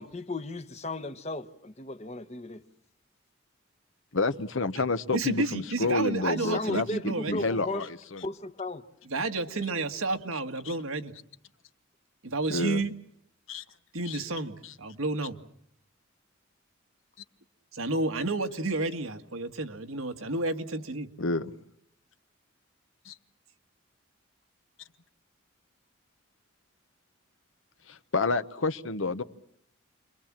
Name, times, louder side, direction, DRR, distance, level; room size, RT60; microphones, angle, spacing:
voice 1, 0.0-2.6 6.3-7.9 8.2-8.9, left 2 dB, 30° left, 1.1 m, -35 dB
voice 2, 4.1-8.3 10.6-10.7 12.5-12.8 13.5-13.6 14.1-14.2 14.6-14.7 21.2-21.5 23.0-23.2 27.9-29.2, left 3 dB, 70° left, 1.0 m, -29 dB
voice 3, 5.1-7.4 9.1-11.1 12.2-12.9 13.9-15.4 17.7-21.1, right 2 dB, 85° right, 1.6 m, -31 dB
29.5 x 23.0 x 7.4 m
head